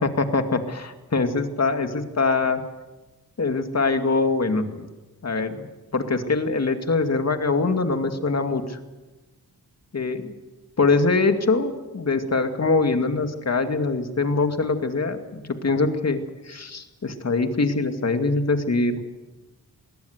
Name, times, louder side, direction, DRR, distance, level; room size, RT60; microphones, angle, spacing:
voice 1, 0.0-2.6 3.4-4.9 5.2-8.8 9.9-10.3 10.8-19.0, left 3 dB, 45° left, 7 dB, 2.4 m, -23 dB
21.5 x 18.0 x 8.1 m, 1.1 s
cardioid pair, 75°, 37 cm